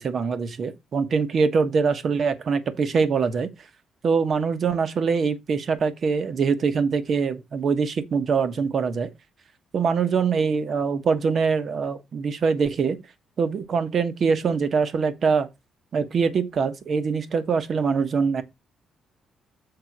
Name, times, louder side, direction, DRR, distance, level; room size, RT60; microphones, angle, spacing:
voice 1, 0.0-3.5 4.0-9.1 9.7-13.0 13.4-15.5 15.9-18.4, right 5 dB, 50° right, 1.2 m, -23 dB
6.9 x 3.6 x 6.0 m
cardioid pair, 90°, 0 cm